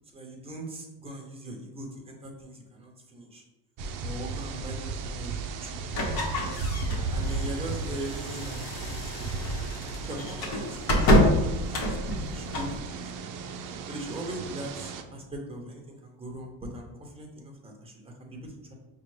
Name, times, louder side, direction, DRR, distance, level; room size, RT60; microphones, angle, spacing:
voice 1, 0.1-3.4 4.0-5.8 6.5-6.6 7.1-9.4 10.0-18.7, right 1 dB, 10° right, 1 dB, 0.9 m, -41 dB
sound 1, 3.8-15.0, right 4 dB, 45° right, 0.5 m, -35 dB
sound 2, 5.9-12.8, equal, 50° left, 1.1 m, -27 dB
5.1 x 2.3 x 3.2 m, 1.0 s
supercardioid pair, 95°, 48 cm